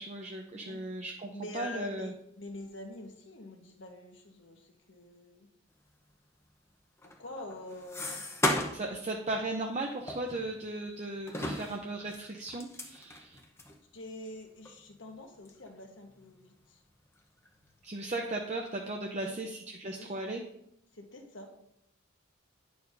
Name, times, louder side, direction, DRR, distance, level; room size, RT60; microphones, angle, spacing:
voice 1, 0.0-2.1 8.7-13.4 17.8-20.4, right 2 dB, 35° right, 1 dB, 0.6 m, -37 dB
voice 2, 1.3-5.5 7.0-8.2 13.9-16.8 19.1-19.4 19.8-20.1 20.9-21.5, left 2 dB, 70° left, 3 dB, 1.2 m, -45 dB
sound 1, 7.0-8.9 9.3-9.5 10.1-10.9 11.3-13.8 14.3-14.4 14.6-14.8 15.4-15.7 16.1-16.8 17.2-17.9, left 1 dB, 15° left, 0.8 m, -36 dB
10.5 x 6.8 x 2.6 m, 0.77 s
head